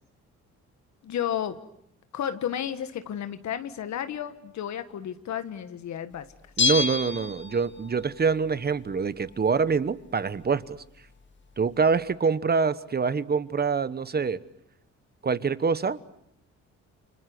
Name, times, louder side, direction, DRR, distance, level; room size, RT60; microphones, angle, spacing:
voice 1, 1.0-1.6 2.1-6.3, left 10 dB, 65° left, 11 dB, 1.6 m, -32 dB
Bell, 6.6-8.0 8.3-8.4, left 5 dB, 40° left, 1.9 m, -27 dB
voice 2, 6.6-10.8 11.6-14.4 15.2-16.0, right 5 dB, 30° right, 15 dB, 1.2 m, -25 dB
29.5 x 24.5 x 7.9 m, 0.76 s
cardioid pair, 90°, 30 cm